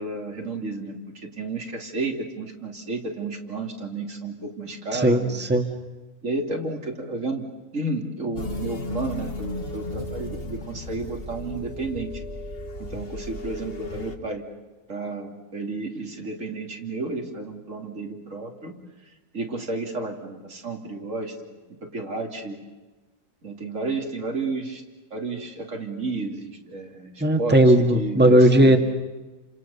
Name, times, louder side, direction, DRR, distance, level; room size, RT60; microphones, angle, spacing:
voice 1, 0.0-5.4 6.2-7.4 7.7-12.1 12.8-14.4 14.9-18.7 19.3-21.3 21.8-22.6 23.4-24.8 25.1-28.7, right 3 dB, 70° right, 2 dB, 3.2 m, -32 dB
voice 2, 4.9-5.7 27.2-28.8, right 1 dB, 10° right, 5 dB, 1.8 m, -17 dB
sound 1, 8.3-14.2, left 2 dB, 45° left, 1.9 m, -34 dB
29.5 x 26.5 x 6.9 m, 1.2 s
omnidirectional pair, 1.4 m